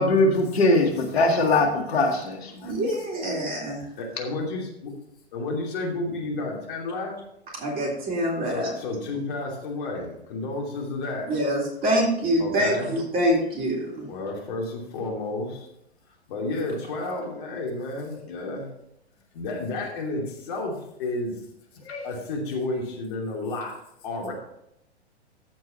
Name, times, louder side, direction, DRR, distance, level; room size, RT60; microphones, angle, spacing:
voice 1, 0.0-2.7 21.9-22.1, left 2 dB, 70° left, 2 dB, 1.8 m, -21 dB
voice 2, 2.6-3.8 7.6-8.7 11.3-14.1, equal, 25° right, -2 dB, 3.6 m, -25 dB
voice 3, 4.0-4.6 5.3-7.1 8.4-11.3 12.4-12.9 14.1-15.7 16.3-18.7 19.3-21.3 22.0-23.7 24.0-24.3, left 2 dB, 50° left, -1 dB, 2.8 m, -31 dB
14.5 x 4.8 x 4.4 m, 0.79 s
figure-of-eight pair, 105°, 33 cm